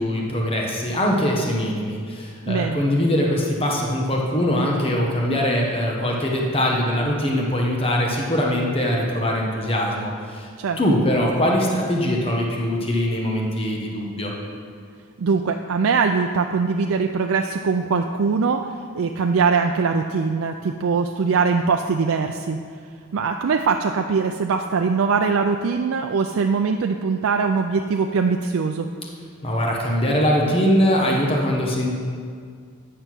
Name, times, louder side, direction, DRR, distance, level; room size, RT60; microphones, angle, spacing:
voice 1, 0.0-10.5 10.8-14.3 29.4-31.9, equal, 25° left, -1 dB, 1.1 m, -22 dB
voice 2, 2.5-2.8 10.6-10.8 15.2-18.6 18.9-22.6 23.1-28.9, right 5 dB, 70° right, 4 dB, 0.4 m, -22 dB
9.2 x 6.6 x 6.1 m, 2.1 s
head